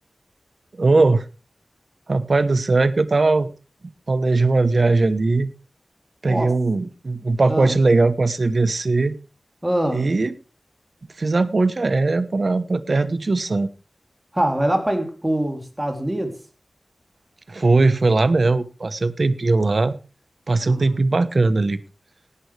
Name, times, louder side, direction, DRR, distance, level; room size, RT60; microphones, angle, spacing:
voice 1, 0.8-1.2 2.1-3.5 4.1-5.5 6.2-9.2 9.9-10.3 11.2-13.7 17.5-19.9 20.5-21.8, right 3 dB, 50° right, 14 dB, 1.1 m, -19 dB
voice 2, 9.6-10.1 14.3-16.3 20.6-20.8, right 1 dB, 15° right, 4 dB, 3.2 m, -23 dB
17.5 x 11.5 x 3.4 m, 0.33 s
wide cardioid pair, 95°, 0 cm